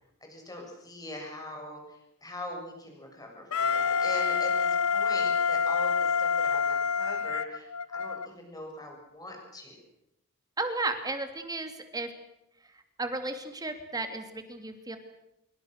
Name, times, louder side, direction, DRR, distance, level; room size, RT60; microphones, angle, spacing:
voice 1, 0.2-9.8, left 1 dB, 20° left, 1 dB, 6.9 m, -42 dB
Wind instrument woodwind instrument, 3.5-8.3, left 6 dB, 80° left, 0.8 m, -27 dB
voice 2, 10.6-12.1 13.0-15.0, right 2 dB, 20° right, 7 dB, 2.8 m, -34 dB
25.5 x 23.5 x 6.7 m, 0.84 s
head